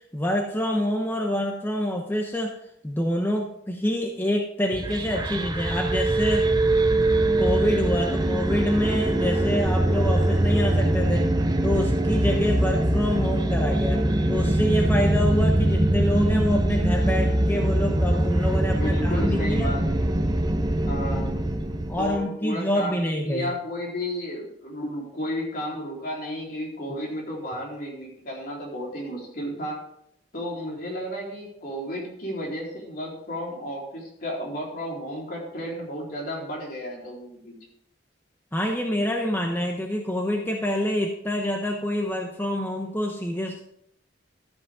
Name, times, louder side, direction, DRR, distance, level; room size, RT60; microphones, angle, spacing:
voice 1, 0.1-2.5 2.8-6.5 7.4-11.3 11.6-14.0 14.3-19.7 21.6-23.5 38.5-43.6, left 1 dB, 10° left, 1 dB, 0.9 m, -26 dB
sound 1, 4.7-22.2, right 1 dB, 25° right, 0.8 m, -23 dB
voice 2, 18.7-20.0 20.8-21.3 22.0-29.8 30.3-37.5, equal, 55° left, -3 dB, 4.0 m, -33 dB
13.0 x 8.2 x 3.7 m, 0.73 s
head